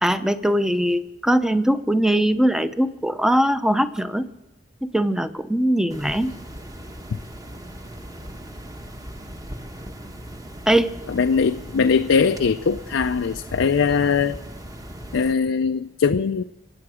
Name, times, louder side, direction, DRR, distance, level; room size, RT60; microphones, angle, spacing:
voice 1, 0.0-4.3 4.8-6.3 10.7-10.9, right 1 dB, 5° right, 12 dB, 0.6 m, -21 dB
sound 1, 5.9-15.3, right 1 dB, 20° right, 1.1 m, -38 dB
voice 2, 11.1-14.4 15.1-16.4, left 5 dB, 85° left, 8 dB, 0.5 m, -21 dB
25.0 x 8.7 x 6.2 m, 0.93 s
head